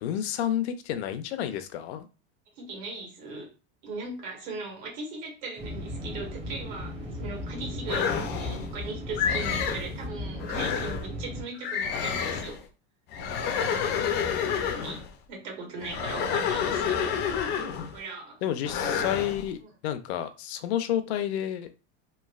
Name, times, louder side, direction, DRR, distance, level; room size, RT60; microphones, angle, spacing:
voice 1, 0.0-2.1 13.6-14.5 18.4-21.7, left 10 dB, 80° left, 9 dB, 0.6 m, -31 dB
voice 2, 2.6-3.5 3.8-12.6 14.5-17.4 17.9-18.7, right 3 dB, 60° right, 0 dB, 1.5 m, -39 dB
sound 1, 5.6-11.4, left 1 dB, 20° right, 0.8 m, -36 dB
sound 2, 7.9-8.7 9.2-9.9 10.4-11.1 11.6-12.6 13.1-15.1 15.8-18.0 18.6-19.4, left 7 dB, 35° left, 0.4 m, -29 dB
3.1 x 2.5 x 2.4 m, 0.33 s
supercardioid pair, 145°, 32 cm